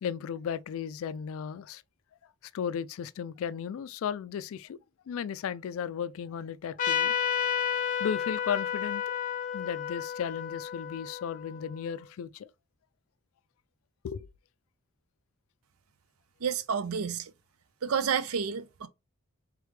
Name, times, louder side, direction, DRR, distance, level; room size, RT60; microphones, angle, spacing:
voice 1, 0.0-1.8 2.5-4.8 5.1-7.2 8.0-9.1 9.5-12.5 14.0-14.3, left 8 dB, 70° left, 0.3 m, -35 dB
Trumpet, 6.8-11.9, left 8 dB, 40° left, 0.7 m, -31 dB
voice 2, 16.4-17.3 17.8-18.9, right 7 dB, 80° right, 0.5 m, -30 dB
3.6 x 3.2 x 3.3 m
head